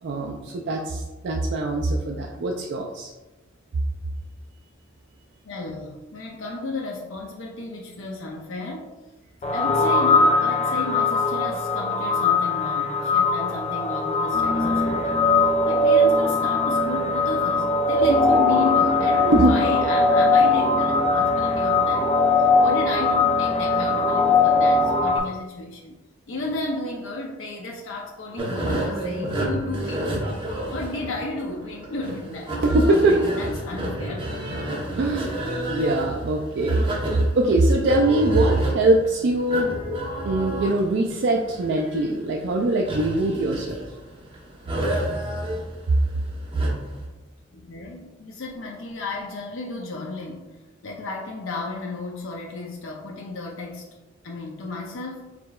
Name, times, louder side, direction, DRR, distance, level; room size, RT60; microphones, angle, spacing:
voice 1, 0.0-3.1 19.3-19.5 32.6-33.3 35.0-35.3 35.7-36.9 37.4-39.7 40.1-43.8, right 2 dB, 60° right, 0 dB, 0.4 m, -22 dB
voice 2, 5.4-8.9 9.5-25.9 26.3-30.2 30.7-34.2 34.5-34.6 47.5-50.6 50.8-53.9 54.2-55.3, left 2 dB, 85° left, -1 dB, 0.6 m, -33 dB
sound 1, 9.4-25.2, left 3 dB, 35° left, 0.4 m, -20 dB
sound 2, 28.4-47.0, right 1 dB, 25° right, 0.8 m, -30 dB
4.8 x 3.7 x 2.3 m, 1.1 s
head